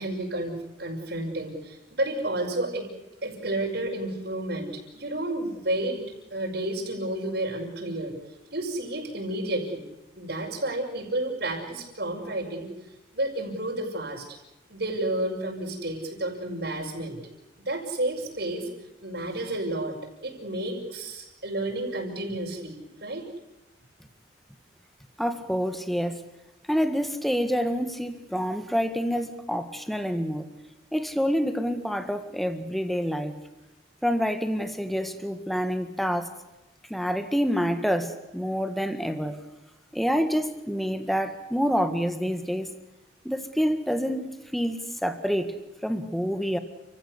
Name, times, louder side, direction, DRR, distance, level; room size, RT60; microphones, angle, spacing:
voice 1, 0.0-2.9 3.2-6.0 6.3-8.1 8.5-9.8 10.2-12.7 13.1-14.4 14.7-17.2 17.6-18.7 19.0-20.0 20.2-22.7 23.0-23.2, right 1 dB, 60° right, -1 dB, 6.0 m, -31 dB
voice 2, 25.2-26.2 26.7-30.5 30.9-33.4 34.0-36.3 36.9-39.4 39.9-42.7 43.3-45.5 45.8-46.6, equal, ahead, 9 dB, 1.7 m, -27 dB
30.0 x 16.5 x 8.3 m, 0.97 s
head